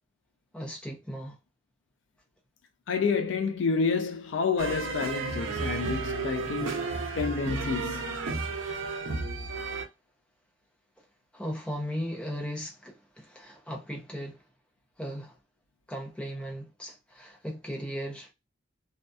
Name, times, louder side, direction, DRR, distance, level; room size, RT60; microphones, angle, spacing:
voice 1, 0.5-1.4 11.3-14.4 15.0-15.3 15.9-18.3, equal, 5° left, 0.6 m, -37 dB
voice 2, 2.9-8.2, left 5 dB, 65° left, 0.4 m, -29 dB
sound 1, 4.6-9.8, right 4 dB, 80° right, 0.6 m, -33 dB
2.6 x 2.2 x 2.3 m
head